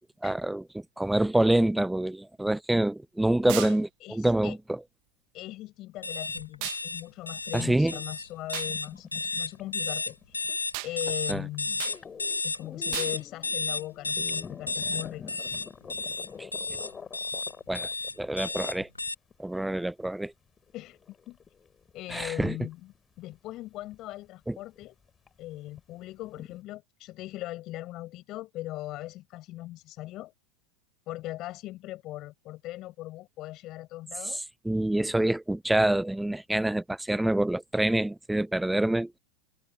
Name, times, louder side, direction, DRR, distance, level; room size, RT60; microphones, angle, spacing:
voice 1, 0.2-0.6 1.0-4.8 7.5-7.9 11.3-11.4 17.7-17.9 18.2-18.9 19.4-20.3 22.1-22.6 24.5-24.6 34.6-39.1, right 1 dB, 5° right, 0.5 m, -26 dB
voice 2, 3.4-4.6 5.3-11.8 12.4-15.3 18.3-18.4 20.7-21.0 21.3-21.4 21.9-25.0 25.4-30.3 31.1-34.5, left 16 dB, 40° left, 5.8 m, -40 dB
sound 1, 3.5-3.8 6.6-6.8 8.5-8.7 10.7-10.9 11.8-12.0 12.9-13.2, right 38 dB, 50° right, 1.3 m, -35 dB
sound 2, 6.0-19.1, left 3 dB, 85° left, 1.9 m, -32 dB
sound 3, 7.7-10.6 11.0-11.3 11.5-19.5 20.1-20.2 20.6-23.0 23.3-23.5 23.9-24.0 24.7-24.9 25.3-25.4 25.7-25.8 26.2-26.5, left 6 dB, 20° left, 7.9 m, -46 dB
figure-of-eight pair, 85°, 0 cm